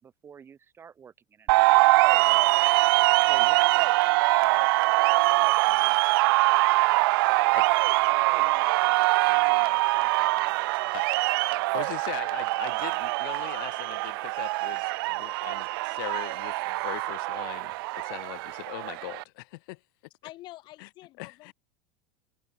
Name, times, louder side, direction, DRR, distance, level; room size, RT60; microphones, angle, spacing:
voice 1, 0.0-2.5 3.3-4.7 5.7-6.0 8.0-10.5 10.8-10.9 11.5-11.7 12.7-12.9, right 7 dB, 20° right, 4.9 m, -50 dB
sound 1, 1.5-19.2, right 22 dB, 75° right, 0.8 m, -23 dB
voice 2, 5.3-5.8 20.2-21.5, left 16 dB, 40° left, 5.1 m, -48 dB
voice 3, 11.7-19.8 20.8-20.9 21.2-21.5, left 26 dB, 65° left, 3.6 m, -40 dB
supercardioid pair, 165°, 12 cm